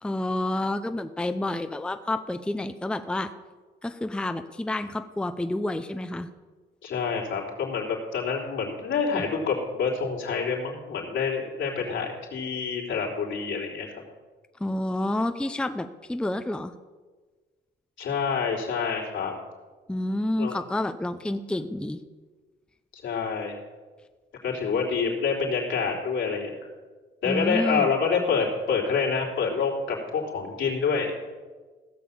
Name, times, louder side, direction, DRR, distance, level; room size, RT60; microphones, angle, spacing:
voice 1, 0.0-3.3 3.8-6.3 14.6-16.7 19.9-22.0 27.2-27.9, left 1 dB, 5° left, 9 dB, 0.6 m, -29 dB
voice 2, 6.8-13.9 18.0-19.3 20.4-20.6 23.0-23.5 24.4-26.6 27.2-31.1, left 5 dB, 75° left, -3 dB, 3.6 m, -27 dB
16.0 x 6.8 x 7.2 m, 1.4 s
cardioid pair, 90°, 20 cm